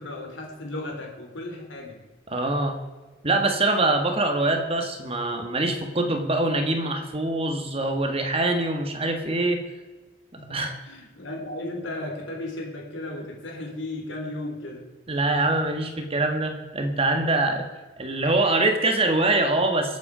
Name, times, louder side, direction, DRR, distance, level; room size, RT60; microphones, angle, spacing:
voice 1, 0.0-2.0 10.4-14.9, left 1 dB, 85° left, 1 dB, 3.2 m, -35 dB
voice 2, 2.3-2.8 3.2-9.6 10.5-10.8 15.1-17.7 18.0-20.0, right 2 dB, 30° right, 5 dB, 1.6 m, -24 dB
25.0 x 8.4 x 5.0 m, 1.2 s
head